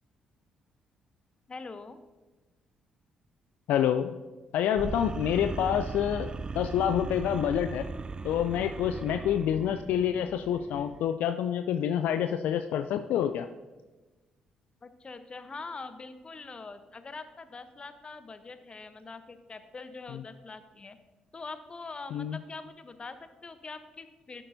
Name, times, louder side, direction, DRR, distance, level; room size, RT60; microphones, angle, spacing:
voice 1, 1.5-2.0 14.8-21.0 21.3-24.4, left 3 dB, 35° left, 10 dB, 0.8 m, -43 dB
voice 2, 3.7-4.2 4.5-6.3 6.5-7.8 8.2-13.5 20.1-20.2 22.1-22.4, left 9 dB, 70° left, 9 dB, 0.3 m, -27 dB
sound 1, 4.8-11.0, right 4 dB, 30° right, 0.3 m, -38 dB
10.5 x 7.5 x 2.6 m, 1.2 s
hypercardioid pair, 45°, 3 cm